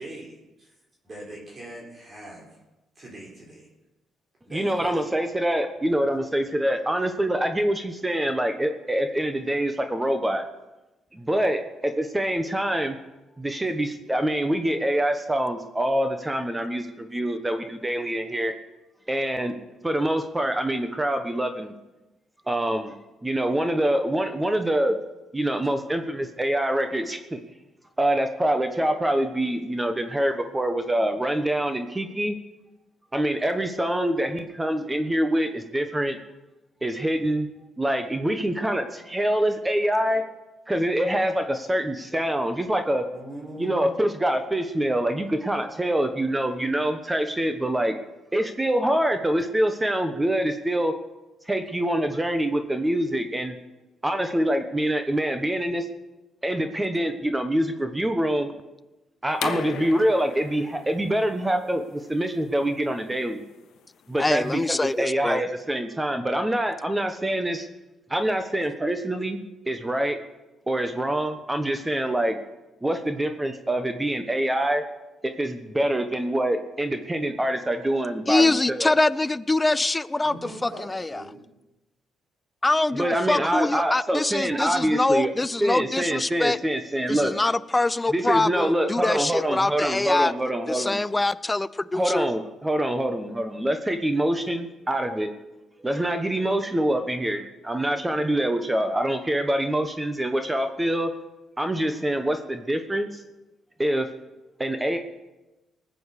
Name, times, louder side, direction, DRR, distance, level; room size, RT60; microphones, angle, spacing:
voice 1, 0.0-0.4 1.0-2.6 2.9-3.7 4.4-5.0 43.1-43.9 80.2-81.4, right 1 dB, 35° right, -4 dB, 4.2 m, -41 dB
voice 2, 4.5-10.4 11.1-11.6 12.0-13.0 13.4-18.5 19.1-19.5 19.8-21.7 22.5-25.0 25.3-27.4 28.0-32.4 33.1-36.2 36.8-37.5 37.8-40.2 40.7-43.0 43.6-47.9 48.3-50.9 51.5-53.5 54.0-55.9 56.4-58.5 59.2-63.4 64.1-67.7 68.1-69.4 69.7-70.2 70.7-72.4 72.8-74.8 75.2-78.9 83.0-85.3 85.6-87.3 88.1-91.0 91.9-95.3 95.8-101.1 101.6-103.2 103.8-104.1 104.6-105.0, right 1 dB, 15° right, 7 dB, 1.1 m, -25 dB
sound 1, 59.3-64.9, left 8 dB, 75° left, 1.1 m, -39 dB
voice 3, 64.2-65.4 78.3-80.3 80.6-81.2 82.6-86.6 87.1-90.3 90.7-92.3, left 2 dB, 15° left, 17 dB, 0.5 m, -24 dB
19.0 x 7.9 x 6.8 m, 1.0 s
cardioid pair, 90°, 0 cm